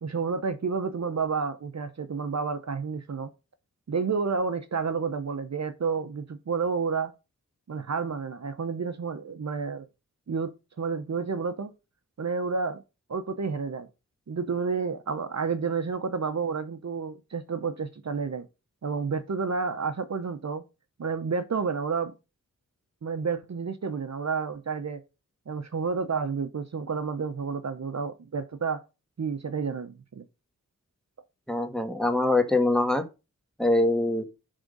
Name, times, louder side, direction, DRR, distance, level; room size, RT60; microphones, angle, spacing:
voice 1, 0.0-3.3 3.9-7.1 7.7-9.9 10.3-11.7 12.2-12.8 13.1-13.9 14.3-18.5 18.8-20.6 21.0-22.1 23.0-25.0 25.5-28.8 29.2-30.2, right 5 dB, 55° right, 0.7 m, -30 dB
voice 2, 31.5-33.0 33.6-34.2, left 2 dB, ahead, 1.3 m, -23 dB
10.0 x 3.6 x 5.2 m
wide cardioid pair, 65°, 33 cm